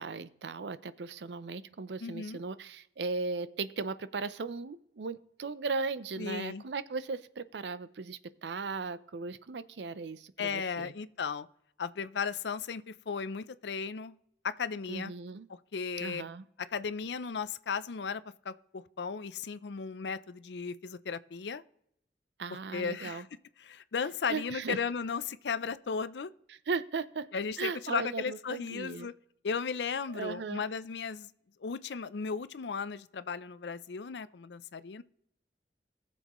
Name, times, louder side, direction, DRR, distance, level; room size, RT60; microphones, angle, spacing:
voice 1, 0.0-10.9 14.9-15.5 16.0-16.4 22.4-23.2 24.3-24.8 26.7-27.3 27.6-29.1 30.1-30.6, right 4 dB, 75° right, 0.5 m, -37 dB
voice 2, 2.0-2.4 6.2-6.6 10.4-11.5 11.8-14.1 14.4-15.1 15.7-16.2 16.7-21.6 22.7-23.3 23.6-26.3 27.3-29.1 29.4-31.3 31.6-35.0, left 5 dB, 75° left, 0.5 m, -35 dB
19.0 x 7.0 x 3.0 m
head